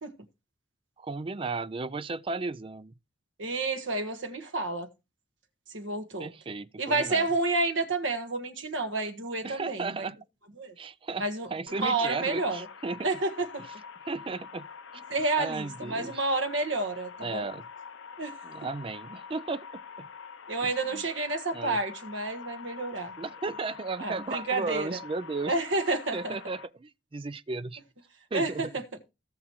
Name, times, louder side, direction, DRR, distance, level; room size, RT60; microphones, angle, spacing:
voice 1, 1.0-2.9 6.2-7.3 9.4-10.2 10.8-13.1 14.1-14.7 15.4-16.2 17.2-17.7 18.4-20.1 20.6-21.1 21.5-21.8 23.2-25.5 26.1-27.8 28.3-28.7, right 3 dB, 30° right, 0.4 m, -35 dB
voice 2, 3.4-4.9 5.7-6.3 6.8-10.0 10.6-10.7 11.2-11.5 11.8-12.6 13.0-13.6 15.1-17.5 18.2-18.3 20.5-23.1 24.0-25.0 25.5-26.4 28.3-28.8, right 2 dB, 85° right, 1.5 m, -30 dB
sound 1, 11.7-26.7, left 6 dB, 85° left, 0.7 m, -45 dB
17.5 x 6.1 x 3.1 m
head